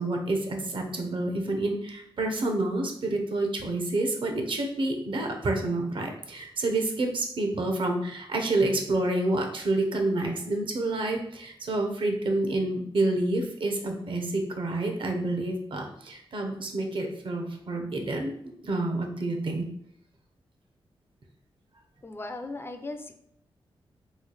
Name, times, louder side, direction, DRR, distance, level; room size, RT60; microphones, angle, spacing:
voice 1, 0.0-19.7, right 2 dB, 60° right, 3 dB, 0.7 m, -28 dB
voice 2, 22.0-23.1, left 2 dB, 25° left, 6 dB, 0.3 m, -37 dB
3.1 x 2.4 x 3.9 m, 0.71 s
wide cardioid pair, 125°, 10 cm